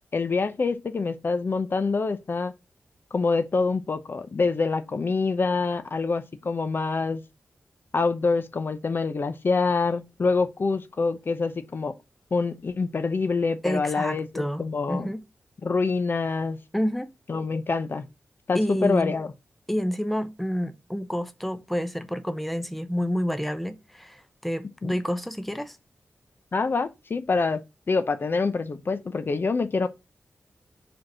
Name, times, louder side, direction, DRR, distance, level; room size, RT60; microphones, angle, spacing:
voice 1, 0.1-2.5 3.1-7.2 7.9-11.9 12.3-15.1 15.6-16.6 17.3-18.0 18.5-19.3 24.8-24.9 26.5-27.6 27.9-29.9, left 4 dB, 50° left, 0.7 m, -26 dB
voice 2, 13.6-15.2 16.7-17.1 18.5-19.1 19.7-25.8, equal, ahead, 0.6 m, -29 dB
5.1 x 4.6 x 6.0 m
wide cardioid pair, 80°, 5 cm